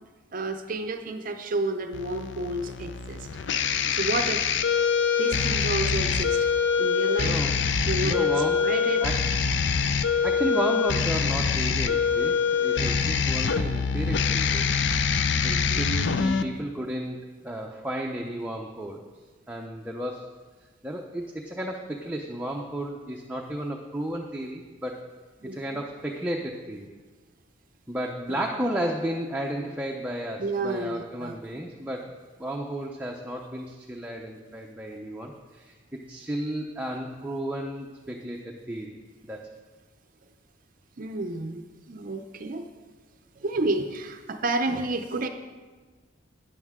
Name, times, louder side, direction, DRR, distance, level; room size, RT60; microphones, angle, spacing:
voice 1, 0.3-3.3 3.9-4.5 5.2-6.5 6.8-7.4 7.9-8.3 8.6-9.0 15.4-15.9 25.4-25.6 28.3-28.4 30.4-31.3 41.0-41.6 41.9-42.7 43.4-45.3, right 2 dB, 45° right, 7 dB, 0.5 m, -30 dB
sound 1, 1.9-16.4, left 6 dB, 70° left, 0.5 m, -25 dB
voice 2, 7.2-7.6 8.0-8.7 9.0-9.2 10.2-14.7 15.4-19.0 19.5-20.3 20.8-25.1 25.4-26.9 27.9-32.1 32.4-39.0 39.2-39.5, right 1 dB, 10° right, 0 dB, 0.6 m, -33 dB
12.0 x 9.9 x 3.6 m, 1.4 s
head